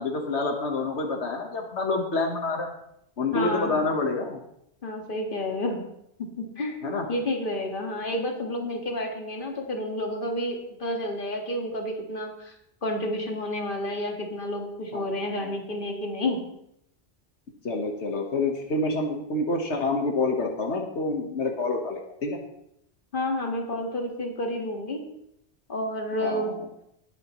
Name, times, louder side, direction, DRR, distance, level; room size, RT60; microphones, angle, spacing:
voice 1, 0.0-2.7 3.2-4.4 6.8-7.1 14.9-15.5 17.6-22.4 26.2-26.5, left 3 dB, 85° left, 2 dB, 1.6 m, -28 dB
voice 2, 3.3-3.8 4.8-5.8 6.2-6.8 7.1-12.5 12.8-16.4 23.1-25.0 25.7-26.5, left 1 dB, 50° left, 2 dB, 2.0 m, -30 dB
19.5 x 9.2 x 3.1 m, 0.78 s
omnidirectional pair, 1.1 m